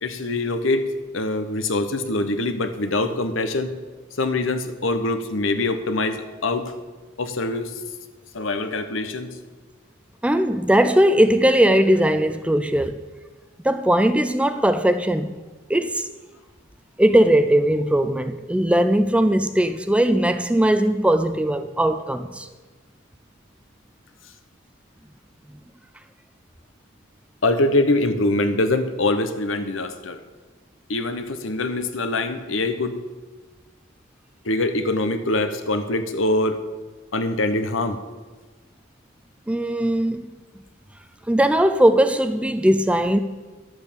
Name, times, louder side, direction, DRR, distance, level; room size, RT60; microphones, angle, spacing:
voice 1, 0.0-3.7 4.2-6.7 7.2-7.7 8.3-9.3 27.4-30.2 30.9-33.0 34.4-36.6 37.1-38.0, left 2 dB, 70° left, 1.0 m, -24 dB
voice 2, 10.2-13.0 13.6-15.3 15.7-16.1 17.0-22.5 39.5-40.3 41.3-43.2, right 1 dB, 5° right, 0.4 m, -19 dB
11.5 x 7.9 x 6.9 m
head